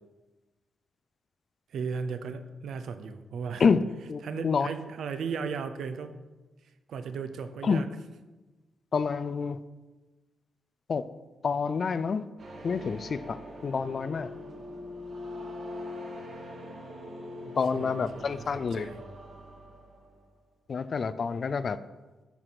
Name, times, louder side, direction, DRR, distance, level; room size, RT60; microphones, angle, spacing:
voice 1, 1.7-3.6 4.2-6.1 6.9-7.9 17.5-18.4 18.7-19.0, right 5 dB, 75° right, 10 dB, 0.7 m, -36 dB
voice 2, 3.6-4.7 7.6-7.8 8.9-9.6 10.9-11.0 11.4-12.3 12.6-14.3 17.6-18.9 20.7-21.8, left 5 dB, 45° left, 14 dB, 0.4 m, -28 dB
sound 1, 12.4-20.3, left 1 dB, 45° right, 1.8 m, -43 dB
12.5 x 4.8 x 5.9 m, 1.2 s
wide cardioid pair, 145°, 0 cm